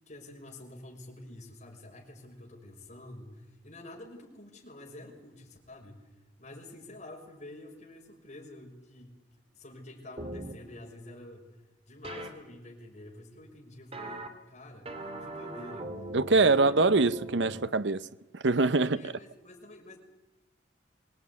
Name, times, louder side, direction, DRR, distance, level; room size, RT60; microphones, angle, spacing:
voice 1, 0.0-9.2 9.5-11.6 11.9-16.1 16.4-16.8 18.9-20.0, left 1 dB, 40° left, 5.7 m, -48 dB
sound 1, 10.2-10.5 12.0-12.3 13.9-14.3 14.8-17.7, right 1 dB, 35° right, 2.7 m, -40 dB
voice 2, 16.1-18.1 18.3-19.1, right 3 dB, 75° right, 0.8 m, -24 dB
24.0 x 19.5 x 9.6 m
head